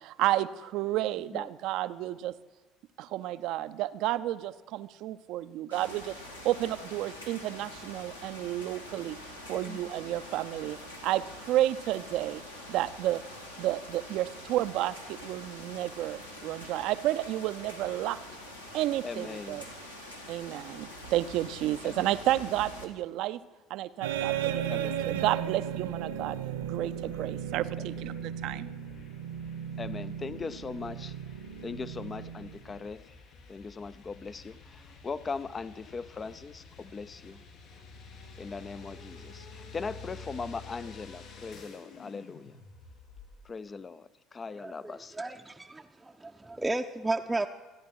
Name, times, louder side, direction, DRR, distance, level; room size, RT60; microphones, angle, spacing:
voice 1, 0.0-2.3 3.0-6.2 6.4-9.2 9.5-10.8 11.0-12.4 12.7-13.2 13.6-18.2 18.7-19.7 20.3-23.4 23.7-28.7, right 14 dB, 55° right, 14 dB, 0.5 m, -31 dB
sound 1, 5.7-22.9, left 1 dB, 85° left, 1.6 m, -45 dB
voice 2, 19.0-19.6 21.8-21.9 24.7-24.9 29.8-31.1 31.6-33.0 33.5-37.4 38.4-42.6 43.5-45.1, left 4 dB, 25° left, 16 dB, 0.5 m, -39 dB
sound 2, 24.0-32.9, right 9 dB, 70° right, 1.0 m, -35 dB
sound 3, 26.5-43.4, left 4 dB, 50° left, 5.0 m, -50 dB
voice 3, 44.6-47.5, right 2 dB, 10° right, 2 dB, 0.6 m, -33 dB
27.0 x 10.0 x 4.7 m, 1.2 s
figure-of-eight pair, 60°, 0 cm